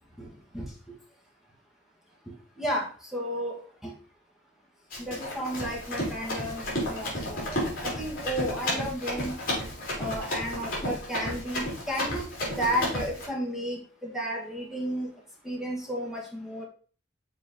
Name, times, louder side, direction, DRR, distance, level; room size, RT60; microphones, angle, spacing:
voice 1, 0.2-0.7 2.6-3.9 5.0-9.3 10.0-12.2 12.6-15.1 15.4-16.7, equal, ahead, -3 dB, 1.5 m, -33 dB
Run, 4.9-13.3, left 1 dB, 45° left, 3.5 m, -32 dB
7.0 x 4.3 x 3.7 m, 0.40 s
head